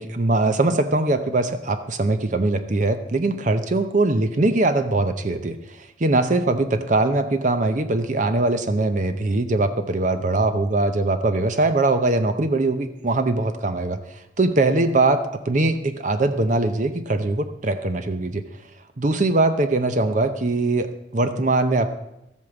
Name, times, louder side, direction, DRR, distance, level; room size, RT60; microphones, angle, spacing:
voice 1, 0.0-18.4 19.0-21.9, right 2 dB, 40° right, 8 dB, 0.7 m, -21 dB
13.5 x 8.4 x 7.0 m, 0.86 s
head